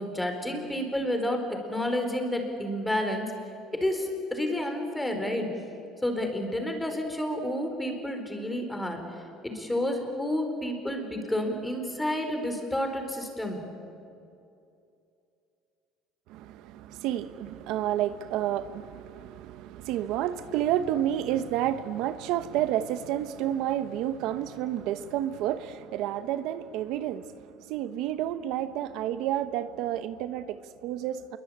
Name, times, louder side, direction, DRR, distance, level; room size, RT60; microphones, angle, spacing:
voice 1, 0.0-3.3 3.7-5.5 6.0-9.0 9.4-13.6, left 1 dB, 5° left, 5 dB, 4.4 m, -30 dB
voice 2, 16.3-27.3 27.7-31.4, right 11 dB, 70° right, 12 dB, 1.0 m, -30 dB
27.5 x 22.5 x 8.8 m, 2.6 s
cardioid pair, 135°, 0 cm